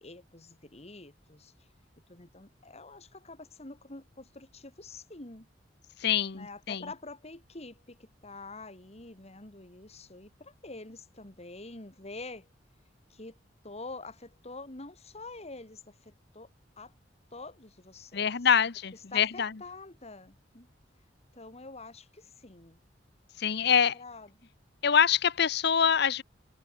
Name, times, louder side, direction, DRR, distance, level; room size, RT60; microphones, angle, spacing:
voice 1, 0.0-1.7 2.1-5.5 6.3-12.5 13.1-13.4 13.6-16.5 16.8-16.9 17.3-18.3 18.9-20.7 21.3-22.8 23.6-24.5, left 3 dB, 35° left, 2.7 m, -46 dB
voice 2, 6.0-6.8 18.1-19.5 23.4-23.9 24.8-26.2, left 7 dB, 65° left, 0.8 m, -25 dB
head